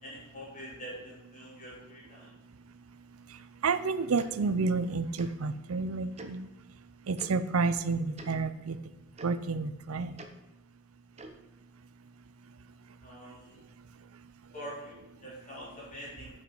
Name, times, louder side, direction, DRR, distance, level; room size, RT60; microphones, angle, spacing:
voice 1, 0.0-2.3 13.0-13.6 14.5-16.3, equal, 35° left, -7 dB, 3.8 m, -45 dB
voice 2, 3.6-6.4 7.1-8.8 9.2-10.1, right 4 dB, 90° right, 12 dB, 0.6 m, -30 dB
Tick-tock, 4.2-4.3 5.2-5.3 6.2-6.3 7.2-7.3 8.1-8.3 9.2-9.3 10.2-10.3 11.1-11.4, right 2 dB, 30° right, 0.8 m, -45 dB
7.5 x 6.0 x 6.4 m, 0.99 s
head